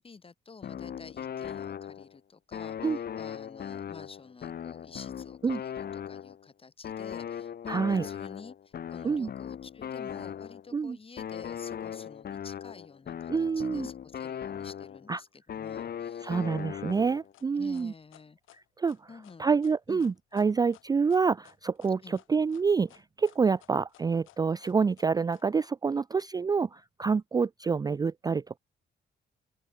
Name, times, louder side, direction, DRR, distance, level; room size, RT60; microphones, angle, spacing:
voice 1, 0.0-16.5 17.5-18.4 19.1-19.5 19.9-20.0 22.0-22.2, left 4 dB, 30° left, 1.6 m, -50 dB
sound 1, 0.6-2.2 2.5-6.5 6.8-10.7 11.2-15.1 15.5-17.3, left 8 dB, 50° left, 1.3 m, -39 dB
voice 2, 7.7-8.1 9.0-9.3 10.7-11.0 13.3-13.9 15.1-15.2 16.2-17.9 18.8-19.0 19.4-22.9 23.2-28.6, right 5 dB, 20° right, 0.3 m, -27 dB
sound 2, 16.9-25.4, left 15 dB, 90° left, 4.7 m, -58 dB
open air
cardioid pair, 90°, 20 cm